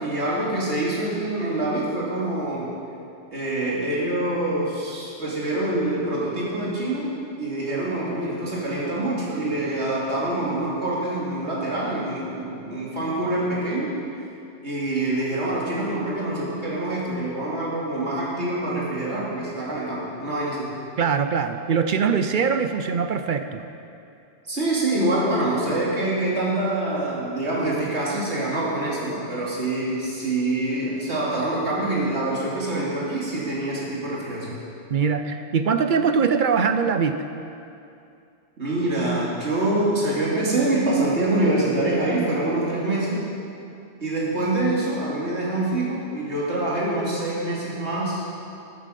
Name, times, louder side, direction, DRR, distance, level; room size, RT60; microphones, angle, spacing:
voice 1, 0.0-2.7 3.3-13.9 14.6-20.7 24.4-34.6 38.6-43.2 44.0-48.2, right 2 dB, 80° right, -6 dB, 3.0 m, -25 dB
voice 2, 21.0-23.6 34.9-37.2, right 6 dB, 55° right, 8 dB, 0.6 m, -22 dB
14.0 x 8.9 x 5.3 m, 2.6 s
omnidirectional pair, 1.1 m